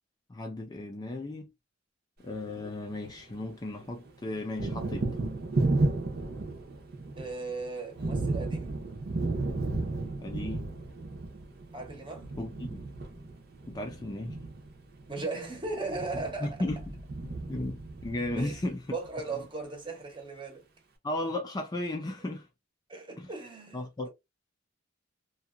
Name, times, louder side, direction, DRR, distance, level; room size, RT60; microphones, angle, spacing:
voice 1, 0.3-1.5 2.2-5.1 10.2-10.7 12.4-12.8 13.7-14.4 15.2-15.3 16.4-16.8 17.2-19.0 21.0-22.5 23.2-23.3 23.7-24.1, left 1 dB, 20° left, 0.4 m, -35 dB
Thunder, 2.3-3.5 3.8-19.1, right 2 dB, 55° right, 0.7 m, -33 dB
voice 2, 7.2-8.8 11.7-12.3 15.1-16.6 18.4-18.6 18.9-20.7 22.9-24.1, right 3 dB, 25° right, 0.9 m, -37 dB
2.7 x 2.3 x 2.4 m
head